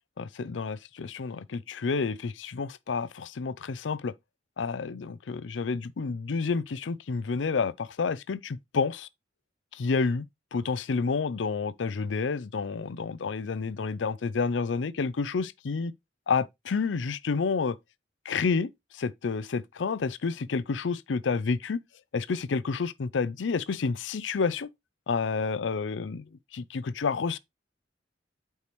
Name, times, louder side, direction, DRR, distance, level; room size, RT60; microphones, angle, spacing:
voice 1, 0.2-4.1 4.6-9.1 9.7-10.2 10.5-15.9 16.3-17.8 18.3-21.8 22.1-24.7 25.1-26.2 26.5-27.4, left 4 dB, 90° left, 0.5 m, -29 dB
8.3 x 4.6 x 3.2 m
head